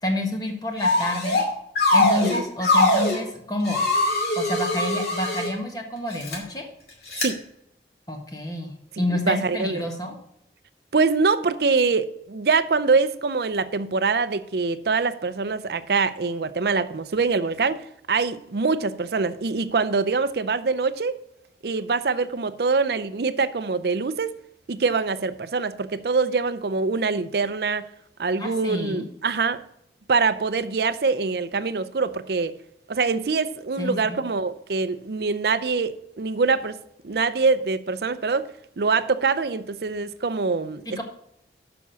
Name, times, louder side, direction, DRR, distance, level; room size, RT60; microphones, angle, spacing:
voice 1, 0.0-1.4 1.9-3.8 4.3-6.7 8.1-10.2 28.4-29.0 33.8-34.2 40.9-41.0, left 1 dB, 20° left, 1.4 m, -29 dB
sound 1, 0.8-1.5 1.8-3.2 3.7-5.5 6.1-6.4 7.1-7.3, left 2 dB, 65° left, 2.5 m, -22 dB
voice 2, 9.1-9.9 10.9-21.2 21.6-24.3 24.7-27.9 28.2-29.6 30.1-32.6 32.9-36.8 37.0-41.0, right 4 dB, 65° right, 0.5 m, -24 dB
7.2 x 6.0 x 6.9 m
head